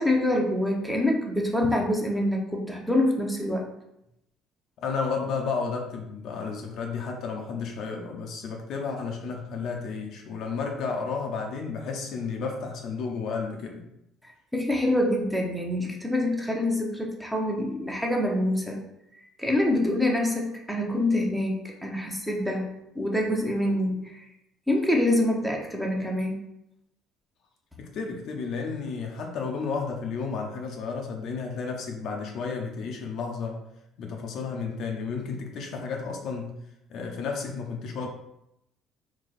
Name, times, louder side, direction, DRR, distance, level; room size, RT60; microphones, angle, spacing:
voice 1, 0.0-3.6 14.5-18.8 19.4-22.7 22.9-24.1 24.7-26.4, left 1 dB, 5° right, 0 dB, 0.9 m, -25 dB
voice 2, 4.8-13.8 27.8-33.6 34.0-36.6 36.9-38.1, left 5 dB, 55° left, 1 dB, 0.6 m, -32 dB
4.1 x 2.3 x 4.1 m, 0.84 s
hypercardioid pair, 55°, 0 cm